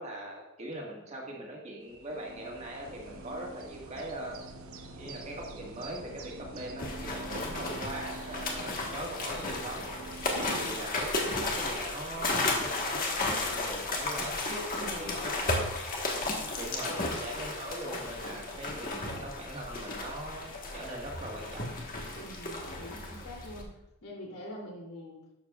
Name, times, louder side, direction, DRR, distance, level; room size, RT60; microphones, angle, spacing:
voice 1, 0.0-4.4 5.0-9.9 10.4-14.4 14.7-15.7 16.6-21.8, right 1 dB, 30° right, -2 dB, 1.7 m, -41 dB
sound 1, 1.8-10.8, right 2 dB, 75° right, 1.0 m, -46 dB
sound 2, 6.8-23.6, left 2 dB, 40° left, 1.4 m, -34 dB
voice 2, 7.2-7.8 10.3-10.8 14.5-15.7 16.2-17.1 22.2-23.7 24.0-25.2, left 1 dB, 90° left, -3 dB, 2.9 m, -45 dB
12.0 x 7.2 x 2.4 m, 0.91 s
head